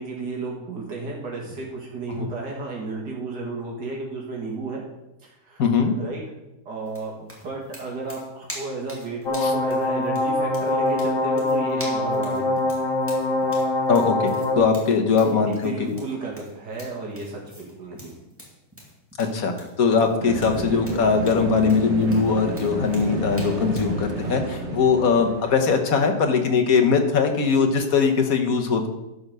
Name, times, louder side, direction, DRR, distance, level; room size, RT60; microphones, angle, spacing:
voice 1, 0.0-4.8 5.2-5.6 6.0-6.2 6.7-12.6 15.2-18.1, right 3 dB, 85° right, -2 dB, 2.7 m, -33 dB
voice 2, 5.6-5.9 9.4-9.5 13.9-14.3 14.6-15.9 19.2-28.9, left 5 dB, 60° left, 5 dB, 1.6 m, -21 dB
sound 1, 6.9-24.0, equal, 10° right, 2.2 m, -44 dB
sound 2, 9.3-14.6, left 1 dB, 80° left, 2.1 m, -23 dB
sound 3, 20.2-25.7, right 3 dB, 45° right, 1.4 m, -31 dB
11.0 x 5.6 x 6.7 m, 0.93 s
omnidirectional pair, 1.8 m